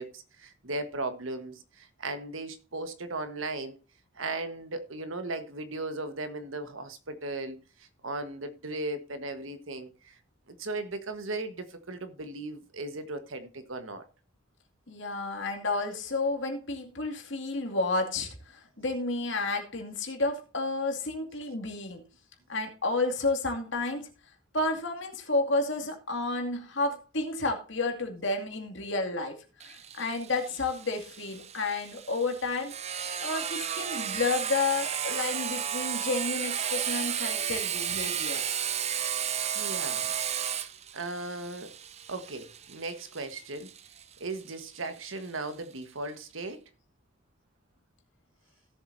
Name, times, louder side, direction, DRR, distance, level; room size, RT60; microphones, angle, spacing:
voice 1, 0.0-3.8 4.1-10.2 10.6-14.0 39.5-40.1 40.9-41.7 42.1-43.7 44.2-46.6, right 2 dB, 75° right, 1.4 m, -37 dB
voice 2, 14.9-22.0 22.5-24.1 24.5-29.4 29.6-32.7 33.2-38.4, left 3 dB, 65° left, 2.4 m, -31 dB
Sawing, 29.6-45.0, right 8 dB, 35° right, 0.6 m, -33 dB
17.0 x 7.4 x 2.7 m
head